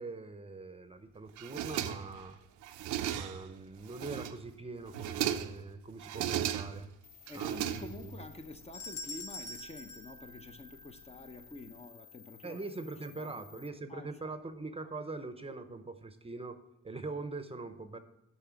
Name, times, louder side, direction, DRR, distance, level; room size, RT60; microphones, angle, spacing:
voice 1, 0.0-2.4 3.1-6.9 7.3-8.1 12.4-16.6 16.8-18.0, right 3 dB, 20° right, 10 dB, 0.7 m, -42 dB
sound 1, 1.4-2.2 2.6-3.5 3.9-4.5 4.9-5.6 6.0-6.9 7.3-8.2, right 11 dB, 80° right, 0.6 m, -36 dB
sound 2, 7.0-13.7, left 9 dB, 70° left, 1.0 m, -57 dB
voice 2, 7.3-12.6 13.2-13.4 13.9-14.4, left 2 dB, 20° left, 6 dB, 0.7 m, -48 dB
sound 3, 8.7-11.1, left 3 dB, 90° left, 1.5 m, -45 dB
8.8 x 5.4 x 7.0 m, 0.89 s
cardioid pair, 90°, 30 cm